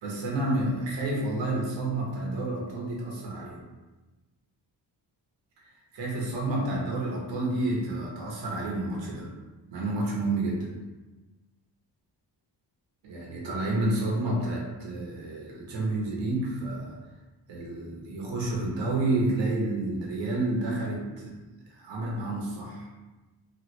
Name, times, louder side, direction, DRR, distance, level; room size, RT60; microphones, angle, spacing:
voice 1, 0.0-3.6 5.9-9.3 9.7-10.7 13.0-16.9 17.5-21.4 21.7-22.9, right 2 dB, 90° right, -3 dB, 1.0 m, -30 dB
3.1 x 2.4 x 3.0 m, 1.2 s
cardioid pair, 100°, 43 cm